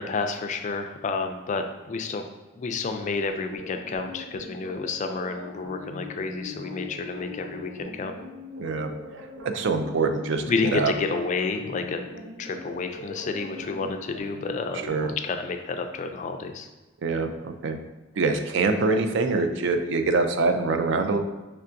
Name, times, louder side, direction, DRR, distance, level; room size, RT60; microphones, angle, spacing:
voice 1, 0.0-2.2 2.6-8.1 10.5-12.0 12.4-16.7, left 4 dB, 35° left, 6 dB, 0.3 m, -30 dB
sound 1, 2.9-14.9, left 2 dB, 75° right, 0.8 m, -41 dB
voice 2, 8.6-8.9 9.2-10.9 14.8-15.1 17.0-17.8 18.2-21.2, right 3 dB, 60° right, 6 dB, 0.4 m, -25 dB
5.5 x 3.3 x 2.5 m, 1.1 s
head